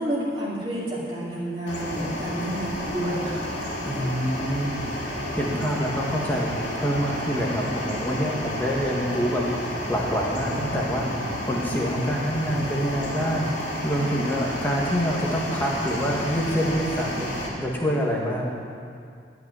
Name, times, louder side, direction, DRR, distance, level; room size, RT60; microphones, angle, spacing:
voice 1, 0.0-3.4, right 1 dB, 30° right, -8 dB, 2.3 m, -29 dB
sound 1, 1.7-17.5, left 1 dB, 90° left, 2.7 m, -31 dB
voice 2, 3.8-4.8 5.3-9.4 9.9-17.3 17.6-18.5, equal, 10° left, -3 dB, 1.7 m, -26 dB
13.0 x 5.9 x 9.5 m, 2.3 s
head